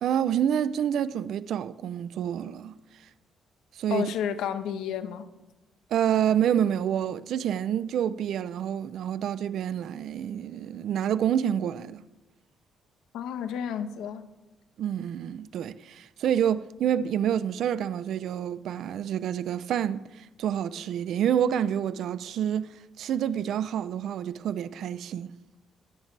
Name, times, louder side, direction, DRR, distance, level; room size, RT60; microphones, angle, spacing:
voice 1, 0.0-2.7 3.8-4.1 5.9-12.0 14.8-25.3, right 9 dB, 75° right, 0.6 m, -28 dB
voice 2, 3.9-5.3 13.1-14.3, left 8 dB, 85° left, 1.1 m, -31 dB
23.5 x 10.5 x 3.4 m
cardioid pair, 90°, 0 cm